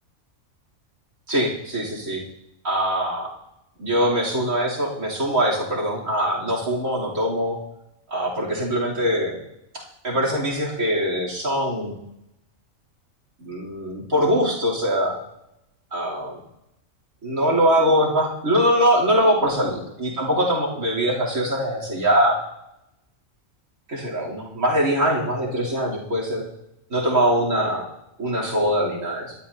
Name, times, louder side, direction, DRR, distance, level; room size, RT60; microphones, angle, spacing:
voice 1, 1.3-2.2 2.6-3.3 3.8-7.6 8.1-9.4 9.7-12.0 13.4-15.2 15.9-16.4 17.2-22.4 23.9-26.5 26.9-27.9 28.2-29.4, equal, 70° right, -1 dB, 3.8 m, -22 dB
27.5 x 12.0 x 2.8 m, 0.86 s
omnidirectional pair, 1.4 m